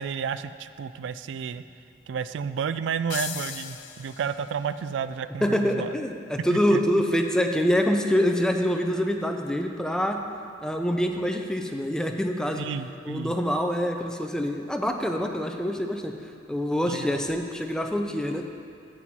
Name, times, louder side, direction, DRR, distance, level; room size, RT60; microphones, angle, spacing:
voice 1, 0.0-1.6 2.1-5.9 6.5-6.8 12.6-13.4 16.9-17.2, right 6 dB, 70° right, 13 dB, 0.3 m, -31 dB
sound 1, 3.1-4.7, left 10 dB, 75° left, 0.4 m, -37 dB
voice 2, 5.4-10.2 10.6-12.6 13.1-16.1 16.5-18.5, equal, 5° left, 3 dB, 0.5 m, -25 dB
8.8 x 7.6 x 4.2 m, 2.4 s
head